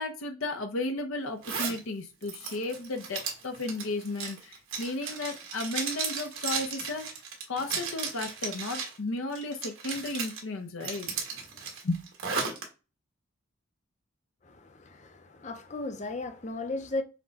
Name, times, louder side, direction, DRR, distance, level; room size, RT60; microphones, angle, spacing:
voice 1, 0.0-7.1 7.5-11.1 11.8-12.0, left 2 dB, 75° left, 0.7 m, -34 dB
Zipper (clothing), 1.4-1.8 2.2-9.0 9.3-10.4 10.8-12.6, right 5 dB, 85° right, 1.6 m, -35 dB
voice 2, 14.4-17.0, left 2 dB, 35° left, 0.6 m, -36 dB
5.8 x 2.2 x 4.0 m
head